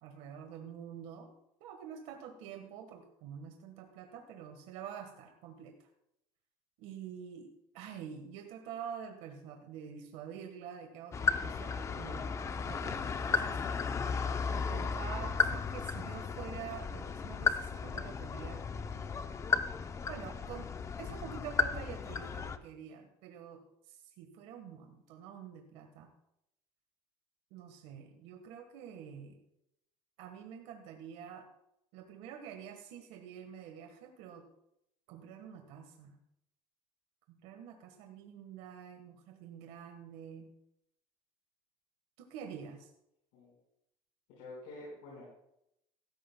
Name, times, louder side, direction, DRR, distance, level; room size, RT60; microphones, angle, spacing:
voice 1, 0.0-5.9 6.8-12.4 12.6-13.6 14.5-18.6 20.1-20.7 21.0-26.1 27.5-29.4 30.2-31.5 31.9-34.5 35.1-36.2 37.3-40.5 42.2-42.9, right 8 dB, 80° right, 4 dB, 1.4 m, -47 dB
sound 1, 11.1-22.6, left 5 dB, 25° left, 0.6 m, -34 dB
voice 2, 44.4-45.3, left 2 dB, 85° left, -5 dB, 4.8 m, -47 dB
16.0 x 13.5 x 2.2 m, 0.80 s
cardioid pair, 140°, 12 cm